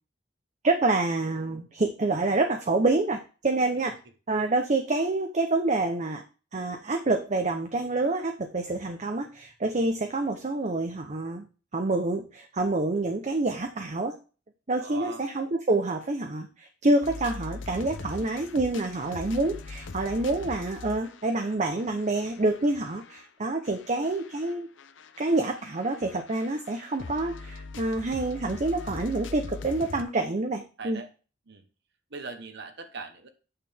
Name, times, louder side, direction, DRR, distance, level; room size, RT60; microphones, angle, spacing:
voice 1, 0.6-3.9 4.3-6.2 6.5-11.5 11.7-14.2 14.7-24.7 25.2-31.0, right 2 dB, 40° right, 5 dB, 0.8 m, -27 dB
voice 2, 14.8-15.2 30.8-31.1 31.5-31.6 32.1-33.3, right 4 dB, 65° right, 7 dB, 1.2 m, -40 dB
sound 1, 17.0-23.2 23.6-30.0, left 3 dB, 70° left, 0.7 m, -42 dB
8.8 x 6.8 x 3.5 m, 0.34 s
head